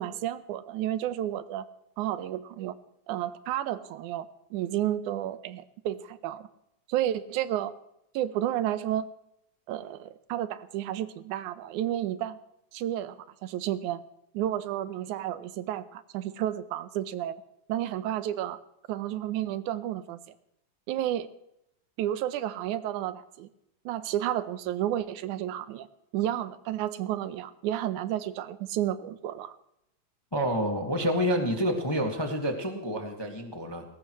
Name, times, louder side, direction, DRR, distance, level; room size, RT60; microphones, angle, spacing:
voice 1, 0.0-1.6 2.0-2.8 3.1-4.3 4.5-6.5 6.9-7.7 8.1-9.1 9.7-12.4 12.7-13.2 13.4-14.0 14.3-17.4 17.7-18.6 18.9-20.2 20.9-21.3 22.0-23.5 23.9-25.9 26.1-29.6, right 12 dB, 85° right, 13 dB, 2.2 m, -31 dB
voice 2, 30.3-33.8, equal, 15° left, 2 dB, 0.8 m, -28 dB
20.5 x 18.0 x 3.1 m, 0.81 s
omnidirectional pair, 3.5 m